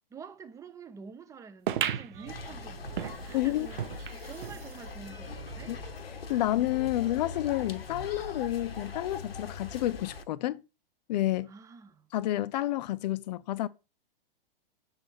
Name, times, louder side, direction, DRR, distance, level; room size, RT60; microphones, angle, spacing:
voice 1, 0.1-3.8 4.2-5.8 11.5-12.1, right 6 dB, 10° right, 0.5 m, -47 dB
sound 1, 1.7-4.6 5.1-5.2 5.4-5.5 6.2-6.3, right 10 dB, 60° right, 0.8 m, -35 dB
sound 2, 2.1-6.1, right 10 dB, 40° right, 1.2 m, -53 dB
sound 3, 2.3-10.2, left 4 dB, 80° left, 1.0 m, -41 dB
voice 2, 3.3-3.7 5.7-5.8 6.3-10.6 11.1-11.5 12.1-13.7, left 15 dB, 45° left, 0.6 m, -30 dB
6.9 x 4.1 x 6.6 m
figure-of-eight pair, 110°, 29 cm